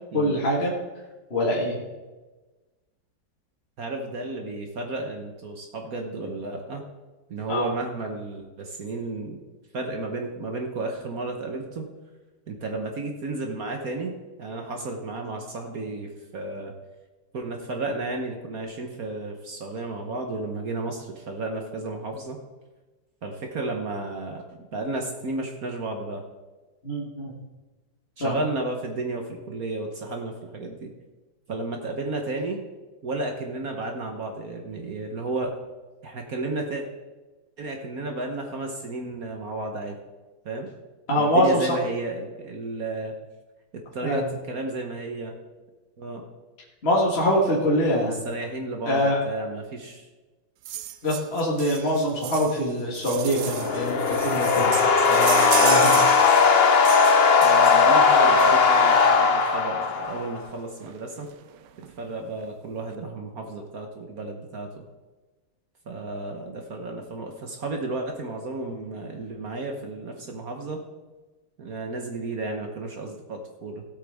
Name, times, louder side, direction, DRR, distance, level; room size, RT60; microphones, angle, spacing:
voice 1, 0.1-0.7 1.3-1.8 7.5-7.7 26.8-27.3 28.2-28.4 41.1-41.7 44.0-44.2 46.8-48.2 48.9-49.2 51.0-54.8 55.1-56.0, equal, 35° left, -3 dB, 2.0 m, -24 dB
voice 2, 3.8-6.8 7.3-9.4 9.7-11.9 12.5-16.7 17.3-22.4 23.2-26.2 28.2-30.9 31.5-32.6 33.0-35.5 36.0-36.8 37.6-40.0 40.4-40.7 41.1-43.1 43.7-45.3 46.0-46.2 48.0-50.1 57.4-61.3 62.0-64.8 65.9-70.8 71.6-73.8, right 2 dB, 55° right, 3 dB, 1.5 m, -33 dB
sound 1, 50.6-59.0 60.1-60.2 60.5-60.6 60.8-61.0 61.3-61.9 62.4-62.5, right 11 dB, 70° right, 1.2 m, -34 dB
sound 2, 53.2-60.3, left 5 dB, 60° left, 0.6 m, -18 dB
17.0 x 8.4 x 3.6 m, 1.2 s
omnidirectional pair, 2.0 m